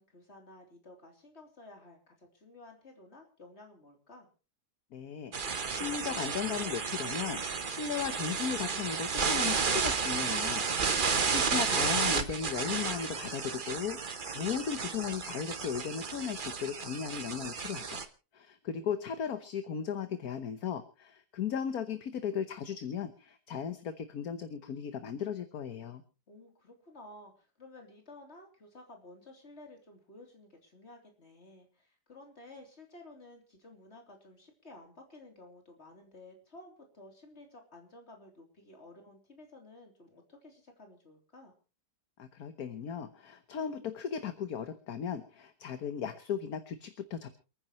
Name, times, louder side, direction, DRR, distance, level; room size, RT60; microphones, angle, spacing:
voice 1, 0.0-4.3 10.7-11.3 26.3-41.5, left 2 dB, 40° left, 3 dB, 3.5 m, -54 dB
voice 2, 4.9-10.6 10.9-18.0 18.3-26.0 42.2-47.3, left 7 dB, 65° left, 10 dB, 1.5 m, -36 dB
sound 1, 5.3-18.1, right 5 dB, 35° right, 1.1 m, -32 dB
28.5 x 10.0 x 3.0 m, 0.34 s
omnidirectional pair, 1.7 m